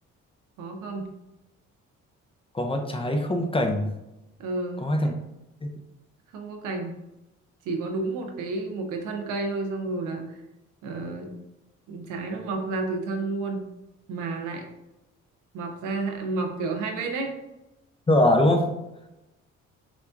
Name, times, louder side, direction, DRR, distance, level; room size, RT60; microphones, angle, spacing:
voice 1, 0.6-1.1 4.4-4.8 6.3-7.0 7.6-10.4 10.8-11.4 11.9-13.6 14.1-14.6 15.5-17.3, right 3 dB, 90° right, 3 dB, 0.8 m, -31 dB
voice 2, 2.5-3.9 4.8-5.1 18.1-18.7, left 1 dB, 20° left, 4 dB, 0.6 m, -22 dB
6.0 x 2.3 x 2.5 m, 0.93 s
cardioid pair, 90°, 30 cm